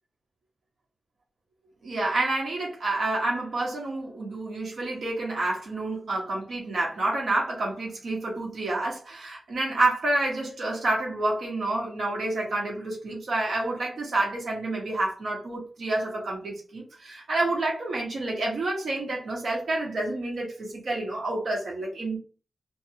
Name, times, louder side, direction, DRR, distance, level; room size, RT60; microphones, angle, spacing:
voice 1, 1.8-22.2, right 2 dB, 70° right, -2 dB, 1.2 m, -29 dB
2.8 x 2.3 x 2.8 m, 0.38 s
wide cardioid pair, 160°, 0 cm